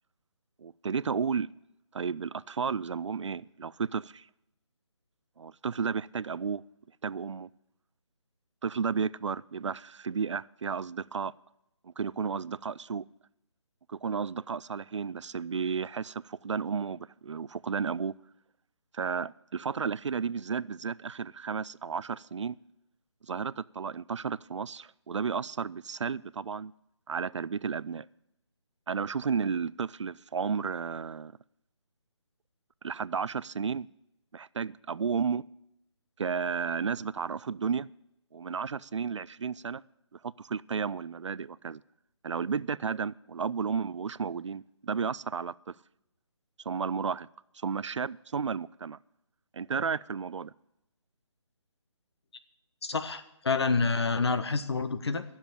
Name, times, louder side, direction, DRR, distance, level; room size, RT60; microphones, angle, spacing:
voice 1, 0.6-1.5 1.9-4.3 5.4-6.6 7.0-7.5 8.6-11.3 11.8-13.0 13.9-18.1 18.9-22.6 23.3-26.7 27.1-28.1 28.9-31.3 32.8-33.9 34.3-35.4 36.2-37.9 38.3-39.8 40.1-41.8 42.2-45.7 46.7-47.3 47.6-49.0 49.5-50.5, right 6 dB, 75° right, 0.4 m, -33 dB
voice 2, 52.8-55.2, left 4 dB, 60° left, 1.2 m, -28 dB
12.0 x 7.2 x 8.9 m
figure-of-eight pair, 155°, 16 cm